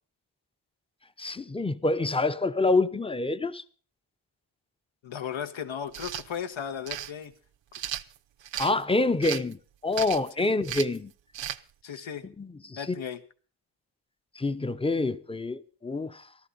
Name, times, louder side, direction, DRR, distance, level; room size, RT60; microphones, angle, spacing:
voice 1, 1.2-3.6 8.6-11.1 12.4-13.0 14.4-16.2, left 2 dB, 10° left, 0.7 m, -27 dB
voice 2, 5.0-7.3 10.4-10.6 11.8-12.3 12.8-13.2, left 8 dB, 75° left, 1.5 m, -36 dB
sound 1, 5.9-6.3 6.9-7.1 7.7-8.7 9.2-9.5 9.9-10.3 10.6-11.0 11.3-11.6, right 11 dB, 70° right, 0.7 m, -35 dB
14.5 x 13.0 x 5.4 m
cardioid pair, 90°, 47 cm